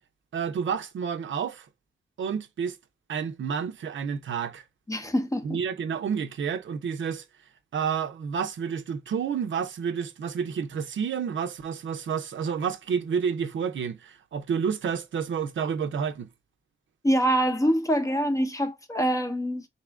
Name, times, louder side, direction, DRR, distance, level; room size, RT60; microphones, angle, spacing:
voice 1, 0.3-1.7 2.2-2.8 3.1-4.6 5.4-7.2 7.7-16.3, right 7 dB, 70° right, 0.6 m, -30 dB
voice 2, 4.9-5.6 17.0-19.7, equal, 15° left, 0.6 m, -25 dB
4.1 x 2.4 x 3.4 m
wide cardioid pair, 110°, 20 cm